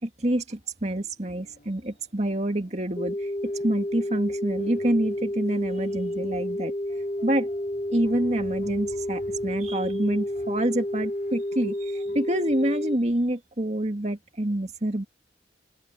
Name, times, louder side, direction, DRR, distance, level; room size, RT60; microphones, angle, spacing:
voice 1, 0.0-3.3 3.6-6.7 7.2-7.5 7.9-15.0, right 1 dB, 35° right, 2.1 m, -27 dB
sound 1, 1.3-12.8, left 1 dB, 45° left, 5.4 m, -53 dB
sound 2, 3.0-13.0, left 1 dB, 25° left, 2.4 m, -30 dB
head